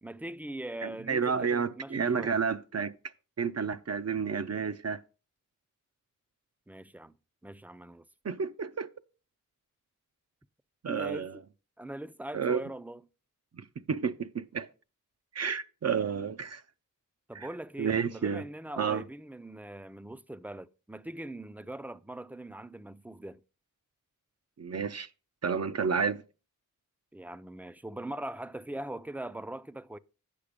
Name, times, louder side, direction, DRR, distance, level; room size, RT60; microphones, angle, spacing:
voice 1, 0.0-2.4 6.7-7.2 7.4-8.0 10.9-11.4 11.8-13.0 17.3-23.4 27.1-30.0, right 1 dB, 5° right, 0.4 m, -41 dB
voice 2, 0.8-2.9 3.4-5.0 8.2-8.9 10.8-11.4 12.3-12.6 13.5-14.7 15.3-16.6 17.3-17.5 17.8-18.4 18.8-19.0 24.6-25.1 25.4-26.2, right 6 dB, 55° right, 0.6 m, -31 dB
8.5 x 5.8 x 5.1 m
wide cardioid pair, 60°, 32 cm